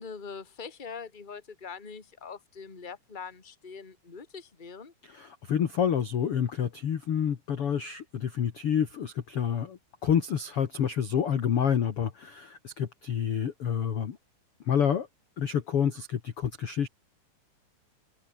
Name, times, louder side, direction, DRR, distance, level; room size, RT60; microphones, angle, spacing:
voice 1, 0.0-4.9, left 5 dB, 15° left, 2.1 m, -43 dB
voice 2, 5.0-14.2 14.7-15.1 15.4-16.9, left 8 dB, 50° left, 1.9 m, -28 dB
omnidirectional pair, 4.4 m